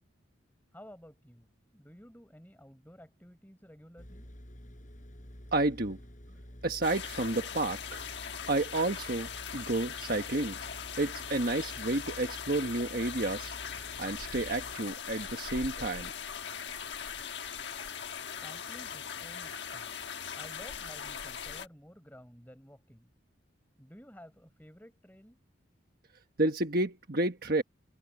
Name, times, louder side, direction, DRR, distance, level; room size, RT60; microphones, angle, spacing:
voice 1, 0.7-4.3 18.3-20.0 20.3-23.1 23.8-25.4, equal, 10° left, 4.5 m, -53 dB
sound 1, 4.0-14.8, equal, 40° left, 4.3 m, -49 dB
voice 2, 5.5-6.0 6.6-8.0 8.5-10.6 11.0-13.5 14.0-16.1 26.4-27.6, right 2 dB, 50° right, 1.3 m, -30 dB
sound 2, 6.8-21.7, left 7 dB, 65° left, 1.3 m, -40 dB
open air
head